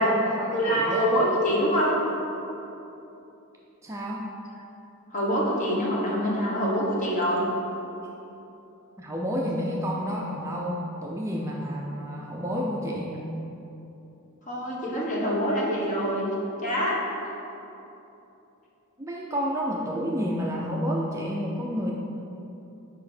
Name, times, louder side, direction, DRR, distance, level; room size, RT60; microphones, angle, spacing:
voice 1, 0.0-1.1 3.8-4.2 9.0-13.3 19.0-21.9, equal, 15° right, -3 dB, 0.4 m, -30 dB
voice 2, 0.5-2.0 5.1-7.5 14.5-16.3 16.6-17.0, equal, 35° left, -4 dB, 1.2 m, -25 dB
6.1 x 4.9 x 4.3 m, 2.9 s
head